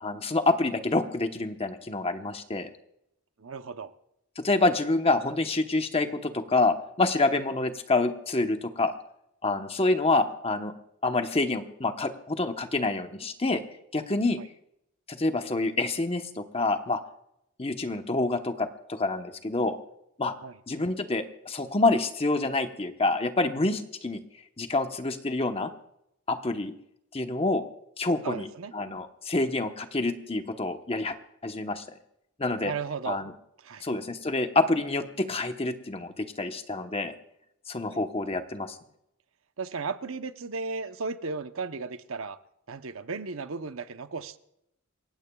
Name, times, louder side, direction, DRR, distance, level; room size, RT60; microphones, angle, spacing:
voice 1, 0.0-2.7 4.4-8.9 9.4-10.7 11.0-13.6 13.9-14.4 15.1-17.0 17.6-19.8 20.2-20.3 20.7-24.2 24.6-25.7 26.3-26.7 27.1-27.6 28.0-28.5 28.7-31.2 31.4-31.8 32.4-32.7 33.1-33.3 33.8-37.1 37.7-38.8, left 2 dB, 25° left, 1.0 m, -27 dB
voice 2, 3.4-3.9 14.4-14.5 20.4-20.6 28.2-28.7 32.6-33.2 33.6-33.9 37.9-38.0 39.6-42.4 42.7-44.4, right 4 dB, 70° right, 0.8 m, -35 dB
28.0 x 15.5 x 2.3 m
head